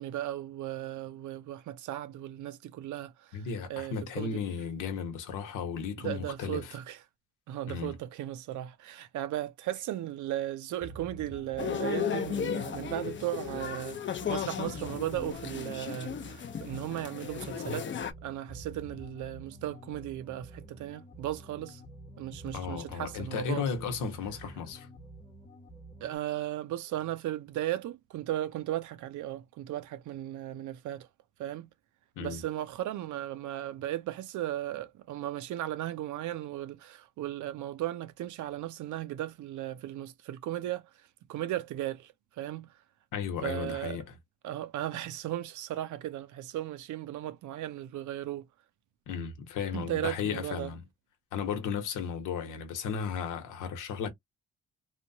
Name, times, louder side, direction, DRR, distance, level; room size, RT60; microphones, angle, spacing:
voice 1, 0.0-3.4 3.7-4.4 6.0-7.0 7.5-17.9 18.2-21.8 22.2-23.6 26.0-31.1 31.4-31.7 32.2-40.9 41.3-42.7 43.4-44.0 44.4-48.5 49.7-50.7, right 13 dB, 75° right, 0.6 m, -36 dB
voice 2, 3.3-6.7 7.7-7.9 22.5-24.9 32.2-32.4 43.1-44.1 49.1-50.9 51.3-54.1, left 6 dB, 90° left, 1.0 m, -35 dB
sound 1, 10.8-26.2, right 1 dB, 20° left, 1.0 m, -49 dB
sound 2, 11.6-18.1, left 8 dB, 40° left, 0.6 m, -35 dB
3.1 x 2.2 x 2.6 m
cardioid pair, 90°, 30 cm